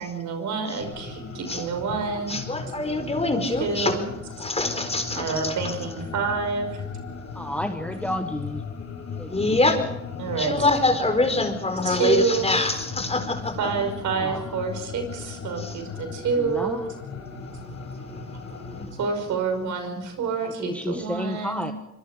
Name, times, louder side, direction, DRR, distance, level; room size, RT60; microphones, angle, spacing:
voice 1, 0.0-2.4 3.6-4.0 5.1-6.7 10.2-10.7 11.8-12.5 13.6-16.8 19.0-21.7, right 5 dB, 75° right, 5 dB, 5.8 m, -28 dB
sound 1, 0.8-18.9, left 5 dB, 60° left, 6.7 m, -37 dB
voice 2, 2.3-4.0 4.4-5.8 9.3-9.8 10.4-13.5 15.6-15.7, left 2 dB, 20° left, 7 dB, 4.3 m, -24 dB
voice 3, 7.3-8.6 9.2-9.6 14.1-14.4 16.4-16.8 18.7-18.9 20.4-21.7, left 1 dB, 5° left, 6 dB, 1.6 m, -31 dB
25.0 x 23.5 x 5.1 m, 0.92 s
cardioid pair, 90°, 30 cm